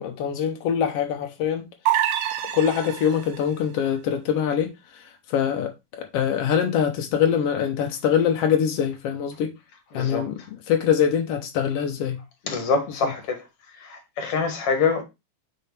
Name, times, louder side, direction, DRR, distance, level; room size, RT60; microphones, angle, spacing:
voice 1, 0.0-1.7 2.5-9.5 9.9-10.3 10.7-12.2 13.0-13.1, left 8 dB, 80° left, 1.3 m, -24 dB
sound 1, 1.9-3.5, right 12 dB, 75° right, 2.7 m, -26 dB
voice 2, 9.9-10.3 12.4-13.5 13.7-15.0, left 5 dB, 55° left, 1.9 m, -25 dB
8.9 x 4.7 x 3.3 m
omnidirectional pair, 4.0 m